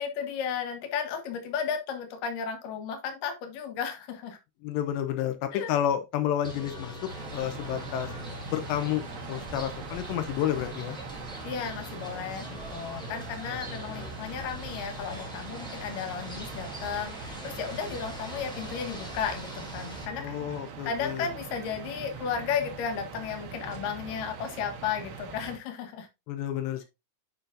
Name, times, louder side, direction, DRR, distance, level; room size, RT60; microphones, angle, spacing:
voice 1, 0.0-4.4 5.5-5.7 11.4-20.6 20.8-26.1, left 7 dB, 60° left, 2.6 m, -34 dB
voice 2, 4.6-6.9 7.3-8.1 8.5-9.0 9.3-11.0 20.2-21.3 26.3-26.8, left 10 dB, 75° left, 2.8 m, -30 dB
sound 1, 6.4-20.1, left 1 dB, 5° left, 0.4 m, -42 dB
sound 2, 7.1-25.6, right 5 dB, 70° right, 3.5 m, -43 dB
9.1 x 5.7 x 2.5 m
omnidirectional pair, 5.4 m